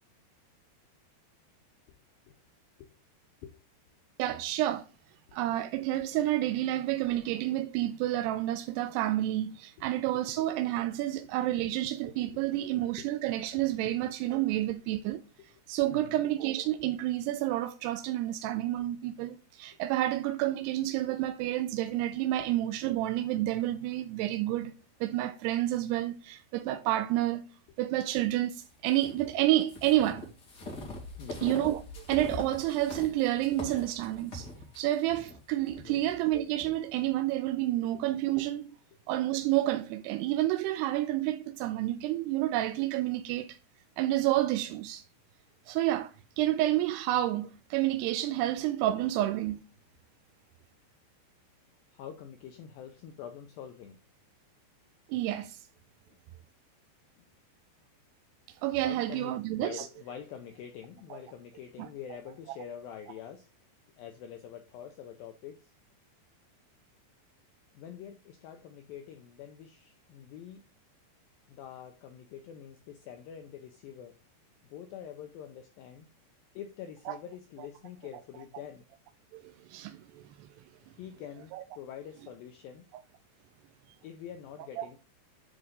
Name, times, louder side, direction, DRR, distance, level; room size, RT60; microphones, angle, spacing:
voice 1, 4.2-4.9 5.3-15.2 15.7-24.7 25.0-27.4 27.8-30.3 31.4-34.5 34.8-38.7 39.1-43.6 44.0-45.0 45.7-49.6 55.1-55.6 58.6-59.9 61.1-61.2 61.8-61.9 77.1-77.2 79.3-80.5 81.5-81.6 84.8-84.9, right 14 dB, 80° right, 2.5 m, -29 dB
voice 2, 9.8-10.3 11.6-11.8 13.0-13.2 13.6-14.0 14.5-14.8 15.4-15.5 15.8-16.2 18.8-18.9 22.4-22.5 22.9-23.0 27.9-28.0 31.2-31.5 35.8-36.1 37.7-38.0 38.9-39.0 51.9-54.0 57.2-57.3 58.8-63.5 64.0-65.6 67.7-70.6 71.5-74.2 74.7-76.1 76.6-78.9 80.8-82.9 84.0-85.0, left 9 dB, 85° left, 2.1 m, -46 dB
sound 1, 28.8-36.7, left 1 dB, 40° left, 1.7 m, -43 dB
10.0 x 4.1 x 3.8 m
omnidirectional pair, 5.0 m